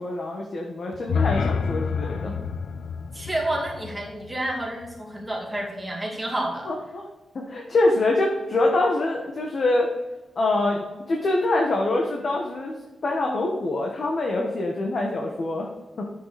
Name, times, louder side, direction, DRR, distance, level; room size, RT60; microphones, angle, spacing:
voice 1, 0.0-2.3 6.6-7.1 7.3-9.9 10.4-12.8 13.0-15.7 16.0-16.1, left 2 dB, 45° left, 0 dB, 1.3 m, -25 dB
sound 1, 0.9-5.0, left 5 dB, 85° left, 0.7 m, -29 dB
voice 2, 3.1-6.7, right 1 dB, 5° right, -2 dB, 2.4 m, -29 dB
10.0 x 7.0 x 4.1 m, 1.1 s
wide cardioid pair, 155°, 0 cm